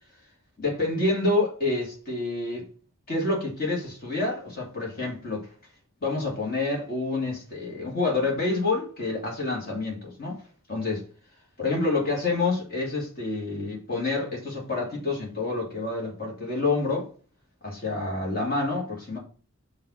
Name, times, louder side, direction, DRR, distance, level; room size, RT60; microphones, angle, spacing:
voice 1, 0.6-2.7 3.1-5.5 6.0-10.4 10.7-11.0 11.6-17.1 17.6-19.2, left 3 dB, 45° left, 2.4 m, -28 dB
5.7 x 3.3 x 5.6 m
head